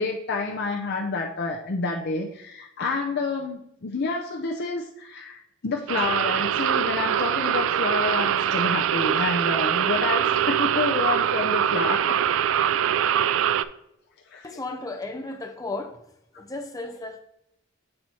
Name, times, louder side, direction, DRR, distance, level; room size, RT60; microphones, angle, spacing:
voice 1, 0.0-12.2 14.3-14.4, left 3 dB, 55° left, 0.6 m, -29 dB
sound 1, 5.9-13.6, right 9 dB, 70° right, 0.3 m, -23 dB
voice 2, 14.4-16.0 16.4-17.2, left 2 dB, 15° left, 0.8 m, -34 dB
7.6 x 4.1 x 4.3 m
head